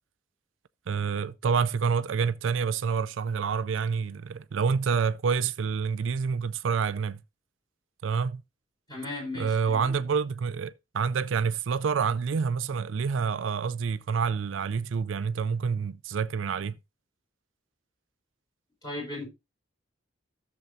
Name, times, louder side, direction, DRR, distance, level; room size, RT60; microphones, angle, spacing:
voice 1, 0.9-7.2 8.0-8.4 9.3-16.8, right 6 dB, 75° right, 0.4 m, -28 dB
voice 2, 8.9-9.9 18.8-19.3, left 2 dB, 20° left, 4.9 m, -36 dB
14.0 x 7.0 x 2.7 m
head